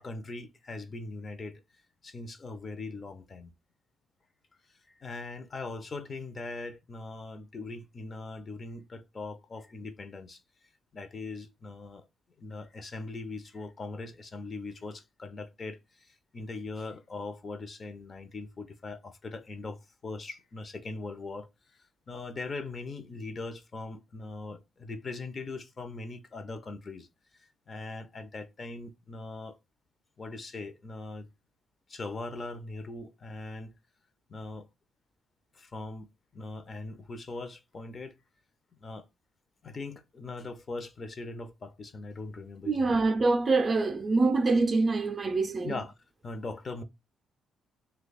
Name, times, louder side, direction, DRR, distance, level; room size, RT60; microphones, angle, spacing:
voice 1, 0.0-1.6 2.0-3.5 4.7-10.4 10.9-12.1 12.4-21.5 22.1-27.1 27.7-29.6 30.2-31.3 31.9-33.7 34.3-34.7 35.5-38.1 38.8-39.0 39.6-43.0 45.6-45.9 46.2-46.8, left 3 dB, 40° left, 0.6 m, -40 dB
voice 2, 42.7-45.7, right 3 dB, 35° right, 0.4 m, -25 dB
2.8 x 2.2 x 3.9 m
cardioid pair, 90°, 0 cm